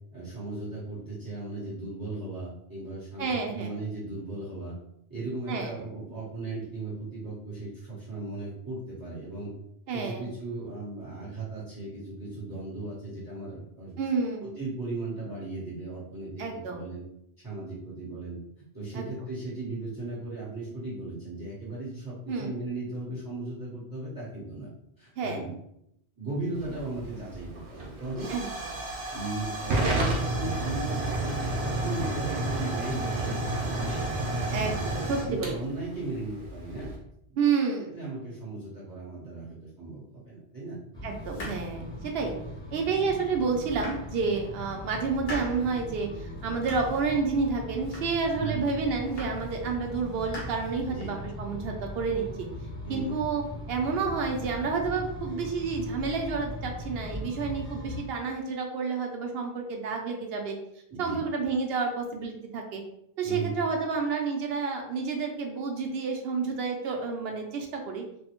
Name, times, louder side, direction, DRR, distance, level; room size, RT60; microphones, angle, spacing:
voice 1, 0.1-4.8 5.1-9.6 9.9-14.0 14.4-17.1 17.4-18.4 18.7-24.7 25.0-25.5 26.2-28.3 29.1-34.6 35.2-36.9 37.3-37.4 37.8-40.8 48.4-48.7 50.9-51.2 52.8-53.2 60.9-61.2 63.2-63.6, right 2 dB, 20° right, -8 dB, 0.9 m, -37 dB
voice 2, 3.2-3.8 5.5-5.7 9.9-10.3 14.0-14.5 16.4-16.9 18.9-19.1 22.3-22.5 25.2-25.4 28.3-28.5 34.5-35.5 37.4-38.0 41.0-42.4 42.7-52.5 52.9-53.4 53.7-60.6 61.0-62.8 63.2-68.0, right 5 dB, 70° right, 2 dB, 0.8 m, -30 dB
Hiss / Fire / Tick, 26.6-37.0, right 1 dB, 90° right, 1.0 m, -31 dB
sound 1, 40.9-58.1, left 1 dB, 5° left, 0.4 m, -39 dB
sound 2, 41.2-42.5 43.0-43.1 43.5-44.5 44.9-45.7 46.1-47.1 47.4-48.4 48.8-49.6 49.8-51.2, equal, 55° left, 1.0 m, -42 dB
3.1 x 2.0 x 2.9 m, 0.77 s
omnidirectional pair, 1.1 m